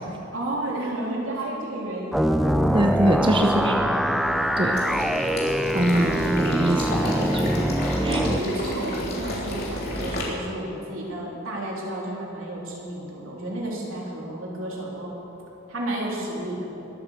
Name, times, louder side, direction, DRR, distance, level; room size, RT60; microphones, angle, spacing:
voice 1, 0.3-2.4 3.3-3.8 8.0-15.2 15.7-16.7, right 1 dB, 80° right, -3 dB, 3.6 m, -32 dB
sound 1, 2.1-8.4, equal, ahead, 0.5 m, -24 dB
voice 2, 2.7-3.7 4.6-4.8 5.7-7.8 8.0-8.2, right 1 dB, 25° right, 3 dB, 0.8 m, -23 dB
Water / Liquid, 4.7-10.2, equal, 50° left, 3.4 m, -31 dB
21.5 x 8.7 x 7.4 m, 3.0 s
head